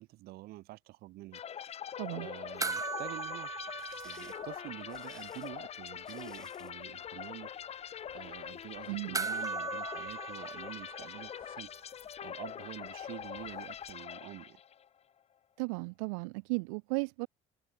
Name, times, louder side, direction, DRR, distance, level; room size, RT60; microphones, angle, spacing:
voice 1, 0.0-1.7 2.1-3.8 4.0-7.5 8.1-11.7 12.2-14.6, right 18 dB, 75° right, 2.1 m, -47 dB
sound 1, 1.3-14.9, left 9 dB, 40° left, 0.7 m, -43 dB
sound 2, 2.6-5.3 5.5-5.6 9.1-11.7 13.9-14.0, right 4 dB, 20° right, 1.0 m, -39 dB
sound 3, 3.5-6.8, left 1 dB, 5° left, 5.7 m, -59 dB
voice 2, 8.9-9.3 15.6-17.3, right 31 dB, 90° right, 1.6 m, -35 dB
supercardioid pair, 80°, 16 cm